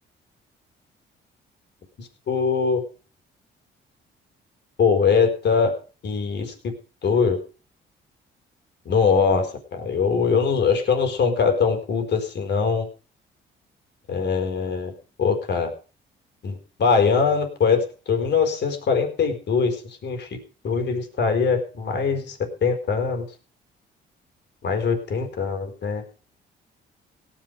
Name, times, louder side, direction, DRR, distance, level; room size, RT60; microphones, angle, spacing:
voice 1, 2.0-2.8 4.8-5.7 6.0-6.5 7.0-7.4 8.8-12.9 14.1-14.9 15.2-15.7 16.4-20.3 20.6-23.2 24.6-26.0, left 5 dB, 60° left, 5 dB, 4.4 m, -22 dB
17.5 x 10.5 x 5.3 m, 0.37 s
cardioid pair, 90°, 20 cm